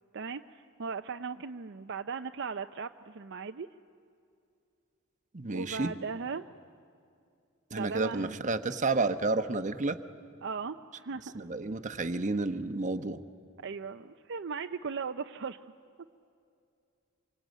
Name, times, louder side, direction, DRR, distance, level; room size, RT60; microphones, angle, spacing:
voice 1, 0.1-3.7 5.5-6.4 7.7-8.6 10.4-11.3 13.6-15.6, right 5 dB, 60° right, 7 dB, 0.6 m, -38 dB
voice 2, 5.3-5.9 7.7-10.0 11.3-13.2, right 3 dB, 35° right, 9 dB, 1.0 m, -31 dB
26.5 x 24.0 x 9.3 m, 2.4 s
head